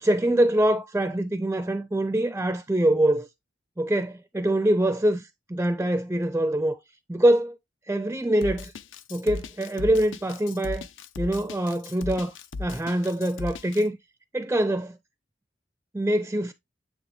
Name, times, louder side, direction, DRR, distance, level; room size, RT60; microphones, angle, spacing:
voice 1, 0.0-3.3 3.8-6.8 7.1-7.5 7.9-8.7 9.1-10.9 11.2-12.3 12.6-14.0 14.3-15.0 15.9-16.5, right 1 dB, 10° right, 0.4 m, -24 dB
Drum kit, 8.4-13.8, left 3 dB, 75° left, 0.5 m, -36 dB
9.1 x 3.3 x 3.2 m
head